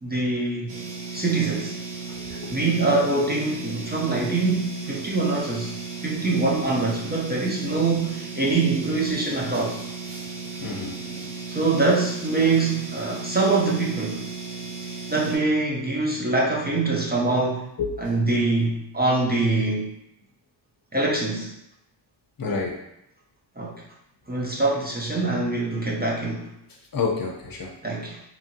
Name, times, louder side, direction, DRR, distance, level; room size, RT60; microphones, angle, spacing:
voice 1, 0.0-0.8 1.1-1.8 2.3-5.7 6.0-9.8 11.5-14.3 15.1-17.7 18.0-19.9 20.9-21.5 23.6-23.8 24.3-26.5 27.8-28.2, right 3 dB, 25° right, -4 dB, 0.4 m, -24 dB
sound 1, 0.7-15.4, right 4 dB, 75° right, 0.7 m, -35 dB
voice 2, 2.1-2.5 10.6-11.3 17.8-17.9 22.4-22.8 26.9-27.7, left 5 dB, 50° left, 0 dB, 0.6 m, -29 dB
2.9 x 2.6 x 2.6 m, 0.82 s
wide cardioid pair, 130°, 43 cm